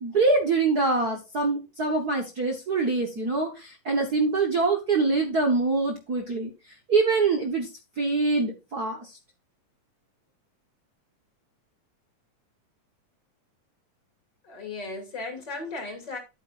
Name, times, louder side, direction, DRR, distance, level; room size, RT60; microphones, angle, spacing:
voice 1, 0.0-6.5 6.9-7.7 8.0-9.0, right 3 dB, 65° right, 0.9 m, -24 dB
voice 2, 14.4-16.2, left 3 dB, 35° left, 2.9 m, -36 dB
9.9 x 8.8 x 2.6 m
omnidirectional pair, 3.8 m